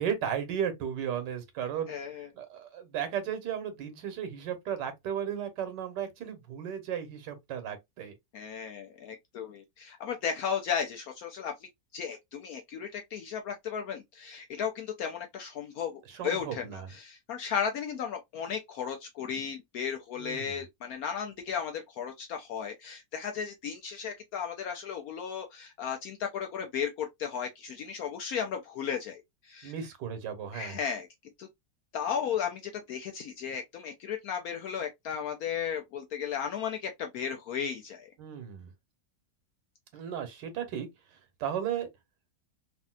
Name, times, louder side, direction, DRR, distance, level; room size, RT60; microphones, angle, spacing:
voice 1, 0.0-8.1 16.1-16.9 20.2-20.6 29.6-30.8 38.2-38.7 39.9-40.9 41.4-41.9, right 8 dB, 75° right, 1.5 m, -35 dB
voice 2, 1.9-2.3 8.3-29.7 30.5-31.1 31.4-31.5 31.9-38.1, left 7 dB, 70° left, 0.9 m, -35 dB
3.2 x 2.6 x 2.2 m
omnidirectional pair, 1.9 m